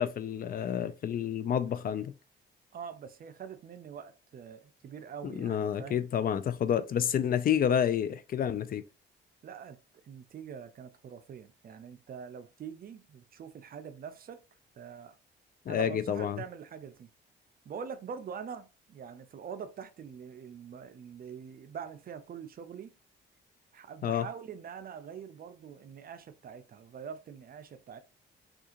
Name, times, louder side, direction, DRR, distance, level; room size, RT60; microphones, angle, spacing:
voice 1, 0.0-2.1 5.2-8.8 15.7-16.4 24.0-24.3, left 9 dB, 45° left, 0.4 m, -29 dB
voice 2, 2.7-6.1 9.4-9.8 10.0-14.4 14.8-15.2 15.7-17.1 17.6-22.9 23.7-28.0, right 7 dB, 50° right, 0.5 m, -44 dB
3.6 x 2.4 x 2.8 m
cardioid pair, 90°, 20 cm